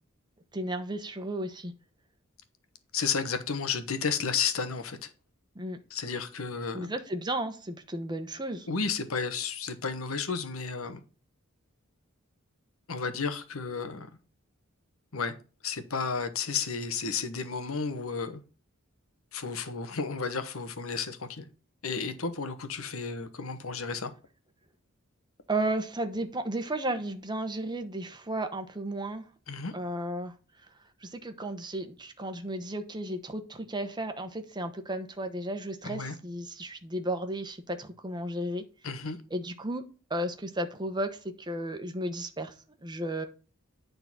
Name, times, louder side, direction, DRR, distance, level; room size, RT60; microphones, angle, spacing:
voice 1, 0.5-1.7 5.5-5.8 6.7-8.7 25.5-29.2 29.7-30.3 31.0-38.7 39.3-39.8 40.1-42.5 42.8-43.2, right 1 dB, 20° right, 1.0 m, -34 dB
voice 2, 2.9-5.1 5.9-6.9 8.7-11.0 12.9-14.1 15.1-15.4 15.6-18.4 19.3-21.4 21.8-24.1 29.5-29.7 35.8-36.1 38.8-39.2, left 5 dB, 90° left, 1.2 m, -32 dB
9.5 x 3.9 x 6.1 m
head